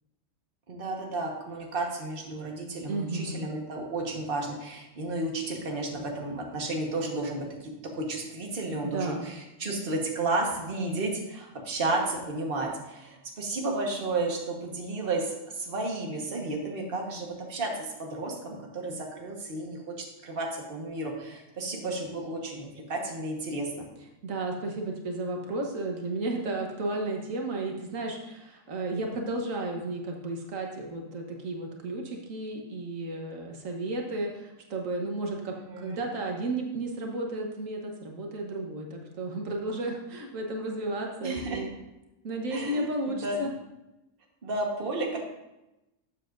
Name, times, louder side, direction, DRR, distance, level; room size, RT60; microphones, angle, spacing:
voice 1, 0.7-23.8 35.5-36.0 41.2-41.6 42.5-43.5 44.4-45.2, right 2 dB, 45° right, 0 dB, 1.5 m, -32 dB
voice 2, 2.8-3.5 8.8-9.3 24.2-41.7 42.2-43.5, right 2 dB, 90° right, 1 dB, 1.6 m, -33 dB
13.0 x 7.4 x 2.6 m, 0.95 s
omnidirectional pair, 1.3 m